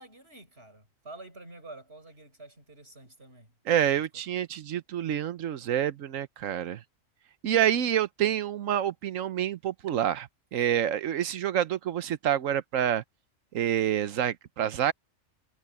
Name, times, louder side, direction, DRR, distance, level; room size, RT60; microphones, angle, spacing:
voice 1, 0.0-3.5 3.9-4.2, right 2 dB, 50° right, 5.8 m, -48 dB
voice 2, 3.7-6.8 7.4-13.0 13.5-14.9, right 10 dB, 80° right, 1.2 m, -27 dB
omnidirectional pair, 1.3 m